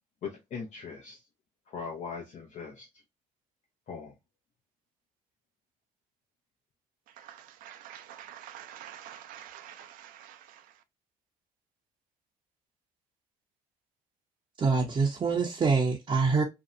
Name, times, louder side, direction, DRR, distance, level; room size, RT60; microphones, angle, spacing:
voice 1, 0.2-1.2 1.7-2.9 3.9-4.1, left 5 dB, 55° left, 0.6 m, -40 dB
voice 2, 7.2-10.7, right 11 dB, 80° right, 0.4 m, -47 dB
voice 3, 14.6-16.4, right 4 dB, 35° right, 0.6 m, -25 dB
2.6 x 2.1 x 2.4 m
supercardioid pair, 75°, 14 cm